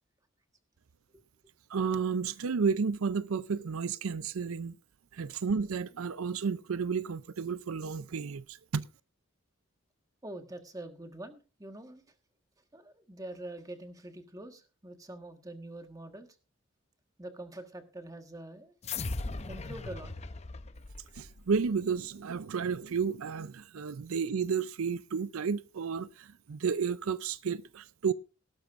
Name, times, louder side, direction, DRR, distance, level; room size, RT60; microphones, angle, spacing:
voice 1, 1.7-4.8 5.1-8.8 21.1-28.1, right 5 dB, 85° right, 0.5 m, -32 dB
voice 2, 10.2-12.0 12.7-16.3 17.2-18.7 19.5-20.1, right 1 dB, 15° right, 1.4 m, -45 dB
sound 1, 18.8-21.6, left 3 dB, 30° left, 0.7 m, -38 dB
17.5 x 12.5 x 2.5 m
head